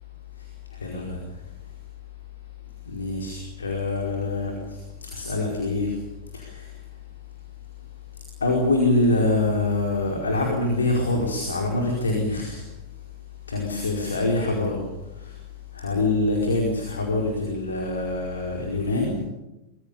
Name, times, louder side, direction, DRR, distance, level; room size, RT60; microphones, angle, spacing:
voice 1, 0.8-1.2 2.8-5.9 6.3-6.7 8.4-12.6 13.5-14.8 15.2-15.3 15.7-19.1, left 2 dB, 75° left, 1 dB, 4.9 m, -25 dB
25.0 x 22.5 x 7.1 m, 0.95 s
figure-of-eight pair, 90°, 0 cm